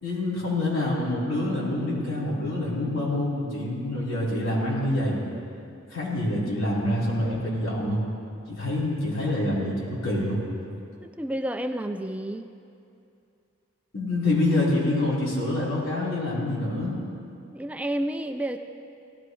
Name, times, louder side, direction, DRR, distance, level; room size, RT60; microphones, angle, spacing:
voice 1, 0.0-5.2 5.9-8.0 8.5-10.4 13.9-16.9, left 1 dB, 85° left, -7 dB, 4.0 m, -26 dB
voice 2, 11.0-12.5 17.5-18.6, right 1 dB, 5° right, 6 dB, 0.3 m, -30 dB
18.0 x 14.0 x 3.2 m, 2.5 s
head